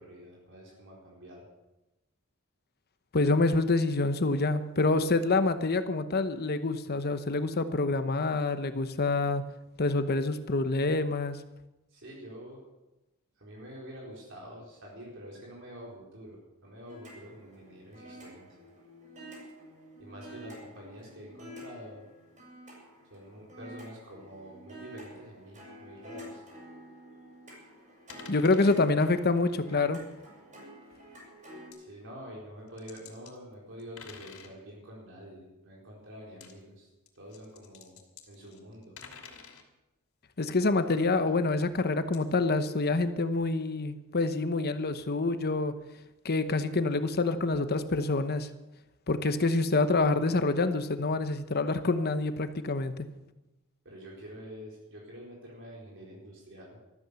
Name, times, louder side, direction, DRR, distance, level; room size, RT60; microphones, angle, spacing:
voice 1, 0.0-1.5 11.9-12.6 13.4-18.5 20.0-22.0 23.1-26.4 31.8-36.9 37.2-38.0 38.3-39.0 53.8-56.8, equal, 60° right, -3 dB, 4.4 m, -47 dB
voice 2, 3.1-9.4 9.8-11.4 28.3-30.0 40.4-45.7 46.2-48.5 49.1-53.1, left 3 dB, 45° left, 10 dB, 0.9 m, -27 dB
sound 1, 16.8-31.7, right 1 dB, 35° right, 7.1 m, -49 dB
sound 2, 28.1-28.8 30.8-30.9 31.7-31.8 32.7-33.3 33.8-34.5 36.3-36.5 37.1-39.6 42.1-42.2, left 6 dB, 70° left, 2.9 m, -49 dB
14.0 x 13.5 x 7.0 m, 0.99 s
head